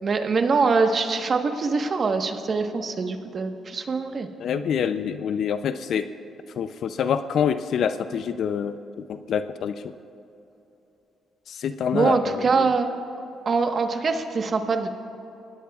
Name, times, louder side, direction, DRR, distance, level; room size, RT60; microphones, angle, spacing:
voice 1, 0.0-4.3 11.9-13.0 13.4-14.9, right 4 dB, 45° right, 5 dB, 1.3 m, -23 dB
voice 2, 4.4-6.0 6.6-8.7 9.1-9.7 11.5-12.4, left 7 dB, 65° left, 10 dB, 0.5 m, -26 dB
24.0 x 18.5 x 2.4 m, 2.9 s
cardioid pair, 90°, 0 cm